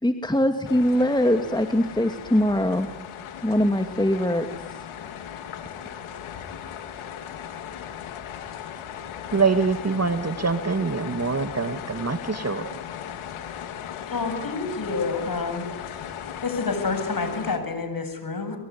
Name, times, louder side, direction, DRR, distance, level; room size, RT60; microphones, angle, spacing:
voice 1, 0.0-2.9 3.4-4.4, left 1 dB, 10° left, 6 dB, 2.5 m, -22 dB
sound 1, 0.6-17.6, left 9 dB, 90° left, 2.8 m, -37 dB
voice 2, 9.3-12.6, right 4 dB, 30° right, 9 dB, 2.1 m, -24 dB
voice 3, 14.1-15.7 16.4-18.6, left 4 dB, 45° left, 7 dB, 7.6 m, -28 dB
24.5 x 22.5 x 9.8 m, 0.97 s
supercardioid pair, 55°, 48 cm